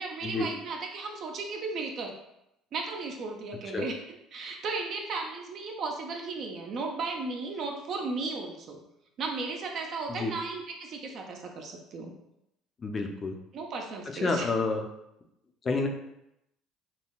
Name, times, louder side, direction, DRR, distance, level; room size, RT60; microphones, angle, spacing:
voice 1, 0.0-2.1 2.7-4.0 4.3-8.8 9.2-12.1 13.5-14.5, right 3 dB, 55° right, 2 dB, 0.4 m, -35 dB
voice 2, 12.8-13.4 14.2-14.9 15.6-15.9, left 3 dB, 30° left, 4 dB, 0.4 m, -29 dB
3.7 x 2.1 x 2.3 m, 0.84 s
cardioid pair, 105°, 0 cm